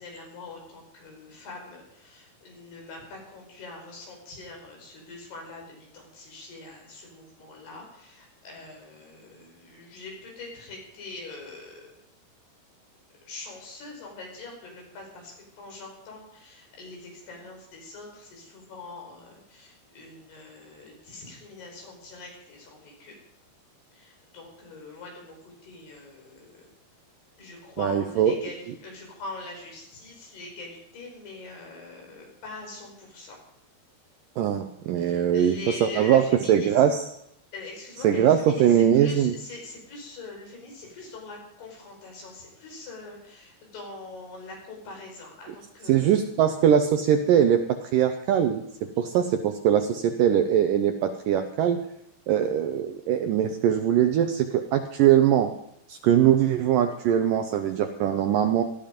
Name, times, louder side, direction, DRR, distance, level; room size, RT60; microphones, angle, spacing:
voice 1, 0.0-11.9 13.3-23.1 23.9-26.7 27.4-33.4 35.0-36.7 37.5-46.3, left 3 dB, 75° left, 1 dB, 7.1 m, -43 dB
voice 2, 27.8-28.3 34.4-37.1 38.0-39.3 45.9-51.8 52.3-55.5 55.9-58.6, right 9 dB, 75° right, 7 dB, 2.0 m, -22 dB
19.0 x 13.5 x 5.2 m, 0.75 s
omnidirectional pair, 4.7 m